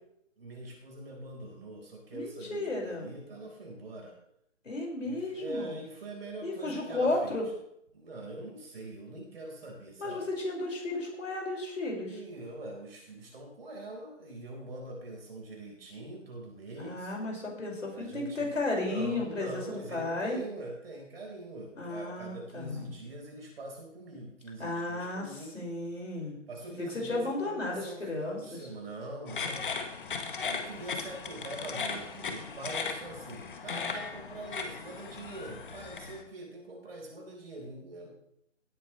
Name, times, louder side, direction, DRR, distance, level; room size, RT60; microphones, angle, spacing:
voice 1, 0.4-4.2 5.0-7.4 7.9-10.2 12.0-17.1 17.9-18.5 18.8-25.6 26.5-29.7 30.4-38.2, right 2 dB, 50° right, 0 dB, 4.6 m, -43 dB
voice 2, 2.1-3.1 4.7-5.8 6.4-7.5 10.0-12.2 16.8-20.4 21.8-22.9 24.6-26.3 26.8-28.4, left 2 dB, 75° left, -1 dB, 5.6 m, -34 dB
sound 1, 29.3-36.2, left 5 dB, 40° left, 1.5 m, -37 dB
17.0 x 9.2 x 3.3 m, 0.76 s
figure-of-eight pair, 150°, 38 cm